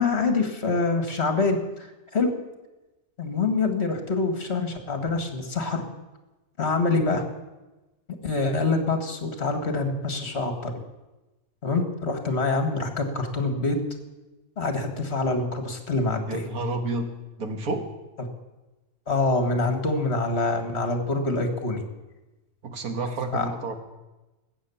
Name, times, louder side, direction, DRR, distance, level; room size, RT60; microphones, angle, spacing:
voice 1, 0.0-2.3 3.2-5.8 6.6-7.2 8.2-10.7 11.6-13.8 14.6-16.4 19.1-21.8 23.3-23.5, left 3 dB, 45° left, 6 dB, 2.1 m, -25 dB
voice 2, 16.2-17.1 17.4-17.9 22.6-23.8, right 2 dB, 90° right, 6 dB, 2.1 m, -30 dB
20.5 x 8.7 x 7.1 m, 1.1 s
omnidirectional pair, 1.5 m